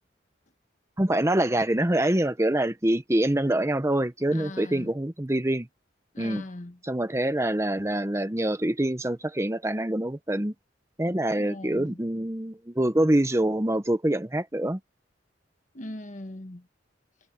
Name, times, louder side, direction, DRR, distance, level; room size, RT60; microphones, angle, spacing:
voice 1, 1.0-5.7 6.2-6.4 6.8-10.5 11.0-14.8, right 1 dB, 15° right, 0.8 m, -25 dB
voice 2, 4.3-4.9 6.1-6.8 11.3-12.0 15.7-16.7, left 1 dB, 40° left, 1.4 m, -40 dB
head